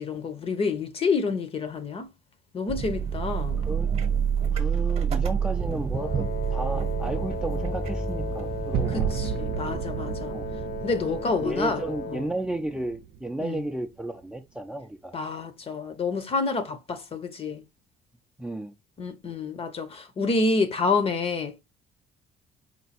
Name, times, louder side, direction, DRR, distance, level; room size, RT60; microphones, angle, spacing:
voice 1, 0.0-2.1 2.5-3.6 8.9-10.3 10.8-11.8 12.1-12.2 13.4-13.6 15.1-17.6 19.0-21.6, left 4 dB, 35° left, 0.8 m, -28 dB
sound 1, 2.7-8.9, right 7 dB, 35° right, 1.0 m, -27 dB
voice 2, 4.5-9.1 10.3-10.5 11.4-15.1 18.4-18.7, right 2 dB, 5° right, 0.5 m, -33 dB
Wind instrument woodwind instrument, 5.9-12.4, left 3 dB, 60° left, 1.1 m, -36 dB
sound 2, 7.0-13.8, right 7 dB, 65° right, 0.5 m, -34 dB
4.5 x 2.2 x 4.1 m
cardioid pair, 110°, 17 cm